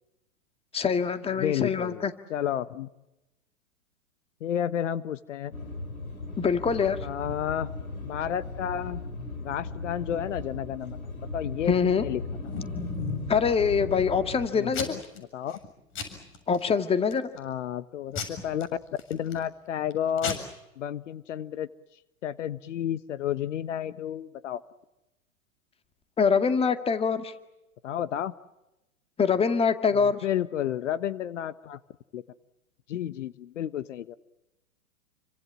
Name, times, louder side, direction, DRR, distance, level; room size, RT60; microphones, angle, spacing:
voice 1, 0.7-2.1 6.4-7.0 11.7-12.0 13.3-15.0 16.5-17.3 26.2-27.3 29.2-30.2, left 6 dB, 15° left, 9 dB, 2.1 m, -24 dB
voice 2, 1.4-2.9 4.4-5.5 7.0-7.7 8.0-9.0 9.4-12.2 14.5-15.6 17.4-18.7 19.1-20.4 20.8-21.7 22.2-24.6 27.8-28.3 30.0-31.8 32.1-32.2 32.9-34.2, left 10 dB, 60° left, 14 dB, 1.3 m, -31 dB
sound 1, 5.5-14.5, left 3 dB, 85° left, 4.5 m, -37 dB
Packing tape duct tape / Tearing, 12.0-13.3 13.8-14.3 14.7-15.2 15.5-15.7 16.0-16.7 17.1-17.5 18.2-19.4 19.9-20.0 20.2-20.3, left 4 dB, 30° left, 7.2 m, -35 dB
30.0 x 25.0 x 7.5 m, 0.95 s
figure-of-eight pair, 110°, 42 cm